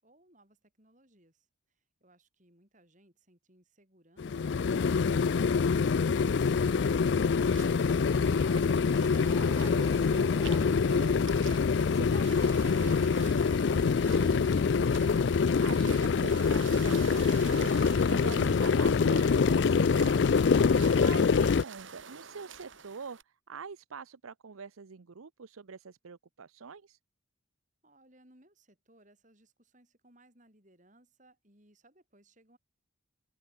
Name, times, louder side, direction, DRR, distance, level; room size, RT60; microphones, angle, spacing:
voice 1, 0.0-4.4 27.8-32.6, right 1 dB, 35° right, 7.8 m, -64 dB
sound 1, 4.2-21.6, left 5 dB, 55° left, 0.4 m, -25 dB
sound 2, 7.5-23.2, right 6 dB, 65° right, 2.3 m, -49 dB
voice 2, 8.2-15.1 15.4-20.4 20.9-23.2 23.5-27.0, right 5 dB, 85° right, 0.7 m, -45 dB
sound 3, 9.1-12.8, equal, 5° left, 3.6 m, -49 dB
head